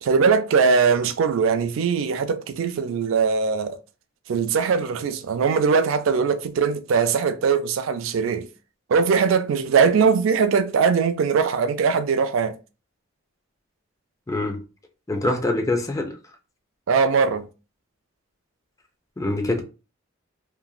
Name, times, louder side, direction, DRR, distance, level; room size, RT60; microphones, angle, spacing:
voice 1, 0.0-3.8 4.3-8.5 8.9-12.6 16.9-17.5, right 5 dB, 75° right, 0.3 m, -21 dB
voice 2, 14.3-14.6 15.1-16.2 19.2-19.6, left 2 dB, 15° left, 0.4 m, -24 dB
3.0 x 2.4 x 2.3 m
head